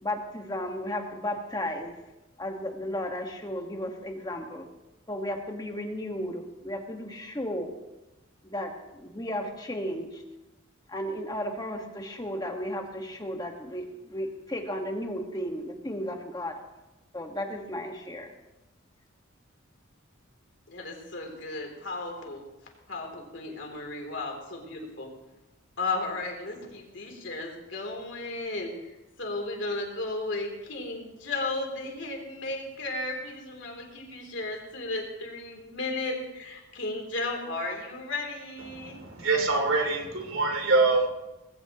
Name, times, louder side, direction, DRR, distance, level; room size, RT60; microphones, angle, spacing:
voice 1, 0.0-1.9 2.4-4.7 5.1-7.7 8.4-10.2 10.9-16.6 17.1-18.3, left 1 dB, 20° left, 3 dB, 1.6 m, -34 dB
voice 2, 20.7-22.4 22.9-25.1 25.8-39.0, left 2 dB, 60° left, 1 dB, 3.2 m, -34 dB
voice 3, 38.7-41.1, right 3 dB, 85° right, 2 dB, 2.8 m, -25 dB
19.5 x 16.0 x 3.0 m, 1.0 s
head